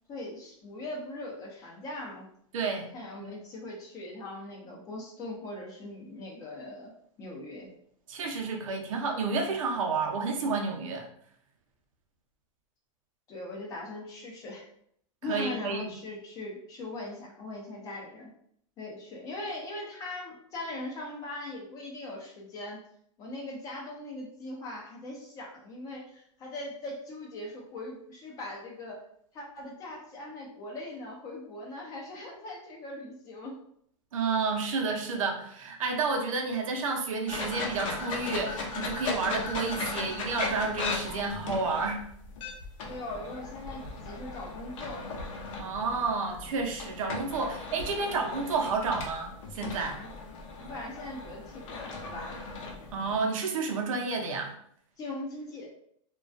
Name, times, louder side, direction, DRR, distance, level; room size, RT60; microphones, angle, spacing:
voice 1, 0.1-2.2 2.9-6.9 7.2-7.7 13.3-14.7 15.2-18.3 18.8-22.8 23.2-29.0 29.3-33.6 42.9-45.1 50.0-50.1 50.6-52.4 55.0-55.7, left 2 dB, 20° left, -1 dB, 0.5 m, -40 dB
voice 2, 2.5-2.9 3.2-3.3 8.1-11.1 15.3-15.9 34.1-42.0 45.6-50.0 52.9-54.5, right 4 dB, 90° right, 2 dB, 0.6 m, -30 dB
sound 1, 37.3-53.2, left 3 dB, 75° left, 0.6 m, -37 dB
2.3 x 2.2 x 2.5 m, 0.67 s
supercardioid pair, 160°, 17 cm